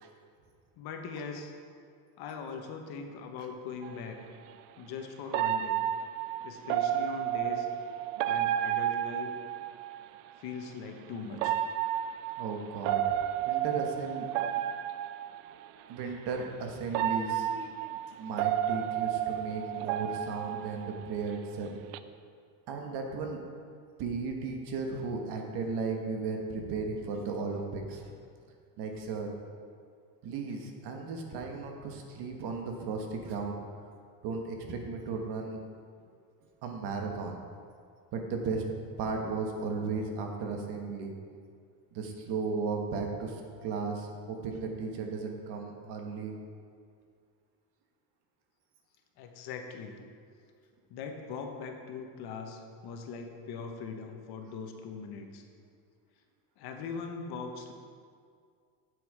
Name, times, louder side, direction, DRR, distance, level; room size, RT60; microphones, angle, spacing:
voice 1, 0.8-1.5 2.2-4.2 4.8-5.8 6.4-7.7 8.3-9.3 10.4-11.6 49.2-50.0 50.9-55.4 56.6-57.7, left 5 dB, 55° left, 4 dB, 1.2 m, -41 dB
sound 1, 3.8-4.0 5.3-10.1 11.3-15.6 16.4-16.5 16.9-21.3 21.7-22.0, right 11 dB, 75° right, 0.5 m, -31 dB
voice 2, 12.4-13.2 13.4-14.3 15.9-17.5 18.2-21.7 22.7-23.4 24.0-28.0 28.8-29.3 30.2-33.6 34.2-35.6 36.6-37.4 38.1-38.6 39.0-41.1 41.9-46.4, right 4 dB, 60° right, 2 dB, 1.5 m, -35 dB
8.4 x 7.8 x 4.9 m, 2.2 s
cardioid pair, 150°, 45 cm